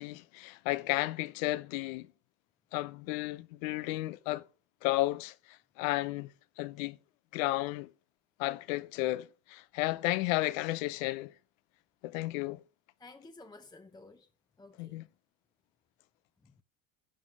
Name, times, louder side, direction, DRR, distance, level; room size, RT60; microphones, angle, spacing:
voice 1, 0.0-2.1 2.7-4.4 4.8-6.3 6.6-7.0 7.3-7.9 8.4-11.3 12.0-12.6 14.8-15.0, left 18 dB, 90° left, 0.8 m, -33 dB
voice 2, 13.0-14.3 14.6-15.0 16.4-16.6, left 2 dB, 10° left, 0.7 m, -53 dB
11.5 x 5.5 x 7.3 m
supercardioid pair, 115°, 38 cm